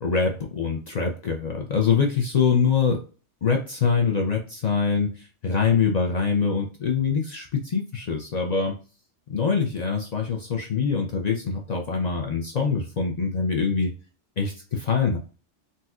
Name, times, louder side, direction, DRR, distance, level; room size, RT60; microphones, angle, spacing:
voice 1, 0.0-3.0 3.4-5.1 5.4-8.7 9.3-13.9 14.4-15.2, left 5 dB, 55° left, 1 dB, 0.5 m, -24 dB
4.1 x 2.2 x 2.3 m, 0.36 s
omnidirectional pair, 1.2 m